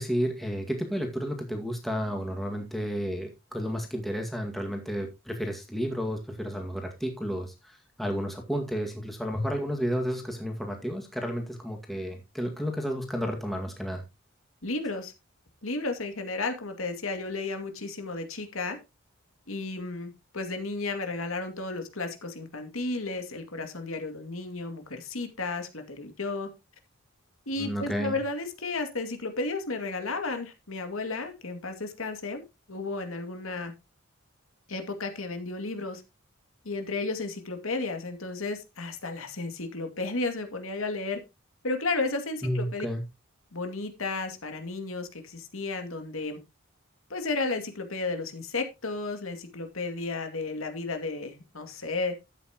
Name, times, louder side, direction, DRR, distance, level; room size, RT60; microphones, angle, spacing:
voice 1, 0.0-14.0 27.6-28.2 42.4-43.0, equal, ahead, 2.0 m, -32 dB
voice 2, 14.6-15.1 15.6-18.8 19.5-26.5 27.5-32.4 32.7-33.7 34.7-36.0 36.6-41.2 41.6-42.9 43.5-46.4 47.1-52.2, left 3 dB, 75° left, 2.4 m, -33 dB
12.5 x 8.6 x 3.0 m
head